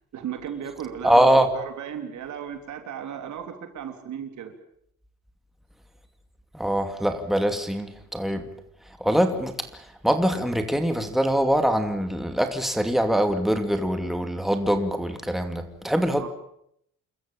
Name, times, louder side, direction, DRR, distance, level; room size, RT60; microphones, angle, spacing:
voice 1, 0.1-4.5 16.2-16.3, right 8 dB, 70° right, 3.5 m, -35 dB
voice 2, 1.0-1.5 6.5-8.5 9.0-16.3, equal, ahead, 2.5 m, -23 dB
28.0 x 14.0 x 8.9 m
cardioid pair, 90°, 30 cm